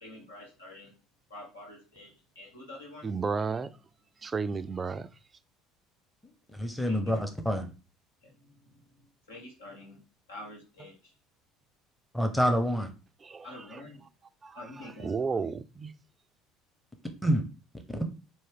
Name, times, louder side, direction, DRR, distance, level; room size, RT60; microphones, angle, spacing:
voice 1, 0.0-0.9 1.3-3.1 6.9-7.2 8.2-8.8 9.3-10.0 10.3-11.1 13.4-14.0 14.5-15.1, left 1 dB, 80° left, 1.1 m, -47 dB
voice 2, 3.0-3.7 4.2-5.1 13.2-13.8 14.4-15.9, right 4 dB, 25° right, 0.3 m, -33 dB
voice 3, 6.5-7.7 12.1-12.9 17.2-17.4 17.9-18.0, equal, 5° left, 0.7 m, -27 dB
4.6 x 2.6 x 3.5 m
figure-of-eight pair, 60°, 0 cm